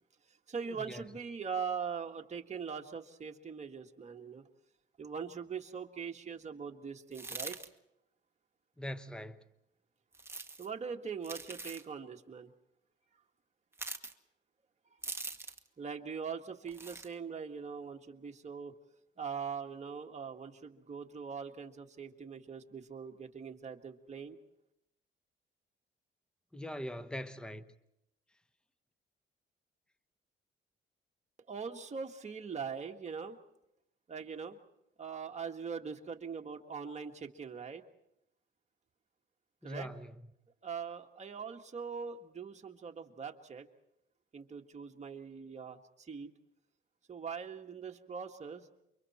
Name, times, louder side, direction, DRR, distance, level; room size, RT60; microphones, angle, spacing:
voice 1, 0.5-4.4 5.0-7.6 10.6-12.5 14.9-15.0 15.8-18.8 19.2-24.4 31.5-33.4 34.1-34.6 35.0-37.8 39.6-39.9 40.6-43.7 44.3-46.3 47.1-48.7, right 6 dB, 35° right, 1.8 m, -42 dB
sound 1, 7.1-7.7 10.1-10.7 11.2-11.9 13.7-14.1 15.0-15.7 16.7-17.1, right 3 dB, 10° right, 1.4 m, -42 dB
voice 2, 8.8-9.5 26.5-27.7 39.6-40.1, equal, 5° left, 1.0 m, -42 dB
28.5 x 24.5 x 4.4 m
cardioid pair, 90°, 20 cm